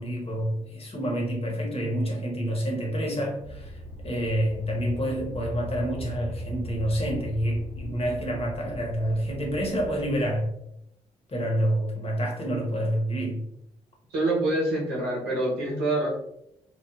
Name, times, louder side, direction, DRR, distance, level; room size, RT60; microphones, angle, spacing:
voice 1, 0.0-10.5 11.3-13.4, equal, 40° left, 0 dB, 1.0 m, -28 dB
sound 1, 3.4-10.4, left 1 dB, 85° left, 1.5 m, -39 dB
voice 2, 14.1-16.1, right 2 dB, 80° right, -3 dB, 0.9 m, -26 dB
3.2 x 2.0 x 2.3 m, 0.80 s
supercardioid pair, 55°, 16 cm